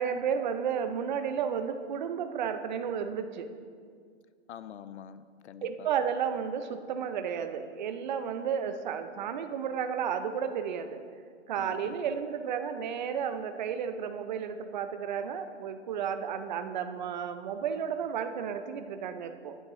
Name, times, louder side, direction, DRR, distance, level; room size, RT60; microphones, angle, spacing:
voice 1, 0.0-3.5 5.6-11.0 11.5-19.6, right 7 dB, 40° right, 8 dB, 0.5 m, -32 dB
voice 2, 4.5-5.9 11.6-12.2, left 9 dB, 70° left, 14 dB, 0.5 m, -46 dB
9.6 x 8.1 x 3.0 m, 2.1 s
hypercardioid pair, 155°, 35 cm